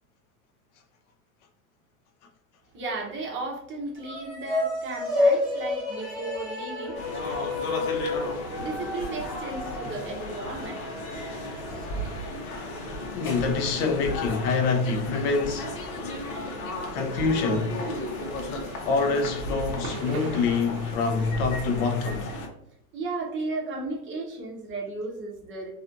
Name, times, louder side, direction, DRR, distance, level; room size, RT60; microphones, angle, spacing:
voice 1, 2.7-7.0 8.6-11.0 22.9-25.7, right 3 dB, 30° right, 0.6 m, -34 dB
sound 1, 4.0-12.5, left 2 dB, 10° left, 0.7 m, -30 dB
sound 2, 6.9-22.5, left 1 dB, 85° left, 0.8 m, -35 dB
sound 3, 11.0-22.1, right 2 dB, 85° right, 0.7 m, -46 dB
voice 2, 13.1-15.7 16.9-17.8 18.8-22.3, left 4 dB, 55° left, 0.5 m, -26 dB
2.4 x 2.4 x 2.4 m
supercardioid pair, 120°, 43 cm